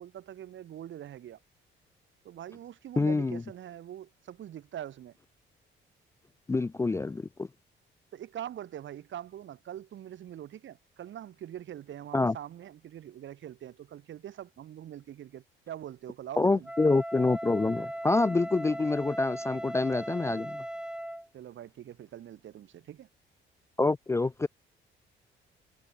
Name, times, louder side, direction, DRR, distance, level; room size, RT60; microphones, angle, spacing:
voice 1, 0.0-1.4 2.2-5.1 8.1-16.7 21.3-23.1, right 11 dB, 70° right, 5.3 m, -43 dB
voice 2, 3.0-3.4 6.5-7.5 12.1-12.4 16.4-20.6 23.8-24.5, left 3 dB, 15° left, 0.3 m, -27 dB
Wind instrument woodwind instrument, 16.6-21.3, right 1 dB, 5° right, 3.6 m, -38 dB
cardioid pair, 90°, 20 cm